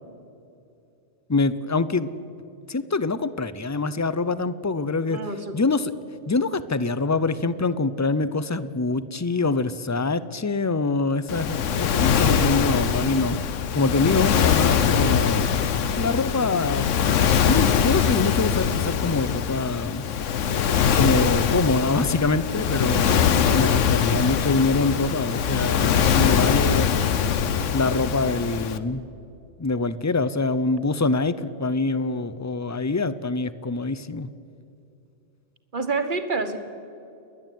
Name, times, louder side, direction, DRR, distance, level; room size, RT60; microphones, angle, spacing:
voice 1, 1.3-2.1 2.7-5.2 5.5-5.9 6.3-15.5 16.0-16.9 17.4-20.1 20.9-27.2 27.7-29.1 29.6-34.3, left 3 dB, 30° left, 15 dB, 0.3 m, -25 dB
voice 2, 5.1-5.6 22.9-23.3 35.7-36.6, right 3 dB, 45° right, 8 dB, 1.5 m, -28 dB
Waves surf, 11.3-28.8, left 7 dB, 80° left, 1.2 m, -22 dB
30.0 x 11.0 x 9.1 m, 2.6 s
omnidirectional pair, 1.3 m